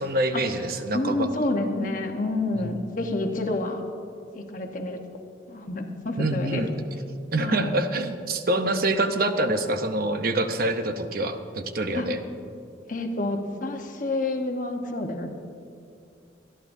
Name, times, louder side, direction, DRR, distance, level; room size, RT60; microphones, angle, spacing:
voice 1, 0.0-1.3 2.5-2.8 6.2-6.8 7.3-12.2, right 1 dB, 55° right, 7 dB, 0.8 m, -26 dB
voice 2, 0.9-3.8 4.3-5.0 5.5-6.6 7.4-7.7 11.9-12.1 12.9-15.3, left 2 dB, 45° left, 3 dB, 1.2 m, -28 dB
24.5 x 11.5 x 2.7 m, 2.5 s
head